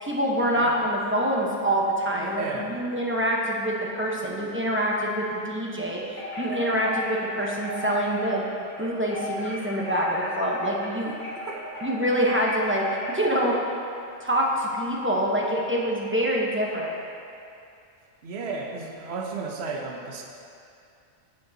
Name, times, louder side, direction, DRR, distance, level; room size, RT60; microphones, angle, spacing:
voice 1, 0.0-8.4 8.8-11.1 11.8-13.6 14.2-16.9, equal, 10° right, -3 dB, 1.0 m, -26 dB
voice 2, 2.2-2.7 11.2-11.6 18.2-20.2, right 4 dB, 65° right, 0 dB, 1.1 m, -34 dB
Wind chime, 6.1-13.5, left 1 dB, 80° left, 2.6 m, -35 dB
16.5 x 6.5 x 2.9 m, 2.5 s
omnidirectional pair, 1.2 m